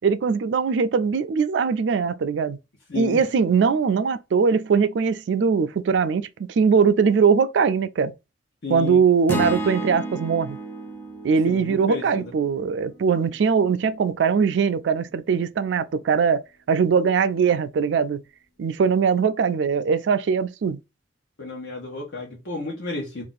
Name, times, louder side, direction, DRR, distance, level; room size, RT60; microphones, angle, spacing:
voice 1, 0.0-2.6 3.0-8.1 8.7-10.6 11.2-18.2 18.6-20.8, right 6 dB, 75° right, 0.4 m, -21 dB
voice 2, 2.9-3.2 8.6-9.0 9.3-9.4 11.5-12.3 21.4-23.2, left 3 dB, 75° left, 1.0 m, -32 dB
sound 1, 9.3-13.6, right 1 dB, 10° left, 0.6 m, -32 dB
2.6 x 2.4 x 3.9 m
head